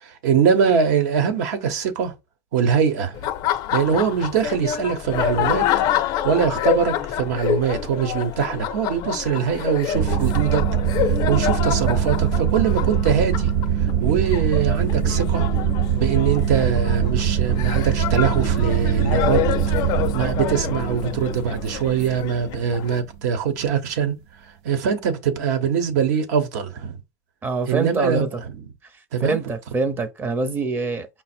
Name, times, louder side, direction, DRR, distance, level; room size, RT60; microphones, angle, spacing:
voice 1, 0.0-2.1 2.5-3.2 3.7-5.7 6.2-10.6 11.0-13.5 14.0-15.4 16.0-19.6 20.1-24.1 24.6-27.0 27.7-28.3 29.1-29.4, right 7 dB, 85° right, 0.9 m, -22 dB
Laughter, 3.1-23.0, left 10 dB, 45° left, 0.4 m, -27 dB
sound 1, 9.9-23.2, right 8 dB, 65° right, 0.6 m, -23 dB
voice 2, 27.4-28.4 29.2-31.1, right 4 dB, 20° right, 0.5 m, -25 dB
5.0 x 2.0 x 4.3 m
supercardioid pair, 145°, 9 cm